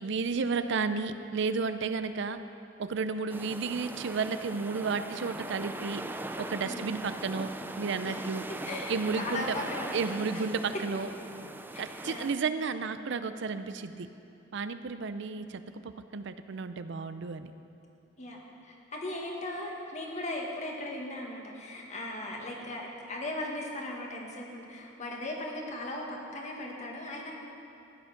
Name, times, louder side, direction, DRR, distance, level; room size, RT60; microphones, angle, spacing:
voice 1, 0.0-2.4 2.8-6.0 6.4-7.5 7.8-8.5 8.9-9.6 9.9-11.1 11.8-14.1 14.5-17.5, right 4 dB, 65° right, 11 dB, 0.5 m, -32 dB
sound 1, 3.3-12.3, right 2 dB, 10° right, 0.4 m, -40 dB
voice 2, 6.6-7.0 8.1-8.2 8.6-10.4 11.7-12.3 18.2-18.4 18.6-27.3, left 1 dB, 35° left, -1 dB, 1.8 m, -38 dB
15.0 x 9.3 x 5.8 m, 2.7 s
head